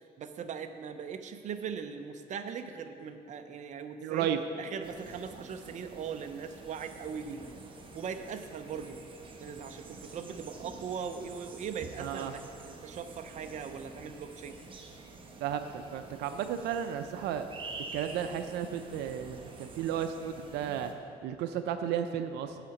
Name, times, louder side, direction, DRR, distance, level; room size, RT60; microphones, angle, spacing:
voice 1, 0.2-4.3 4.6-7.4 7.9-9.0 9.4-14.6, right 6 dB, 45° right, 7 dB, 0.6 m, -40 dB
voice 2, 4.0-4.4 12.0-12.3 15.4-17.5 17.9-20.9 21.2-22.6, right 9 dB, 85° right, 8 dB, 0.5 m, -33 dB
sound 1, 4.8-20.9, right 3 dB, 30° right, 1.0 m, -48 dB
8.1 x 5.8 x 7.0 m, 2.4 s
cardioid pair, 110°, 17 cm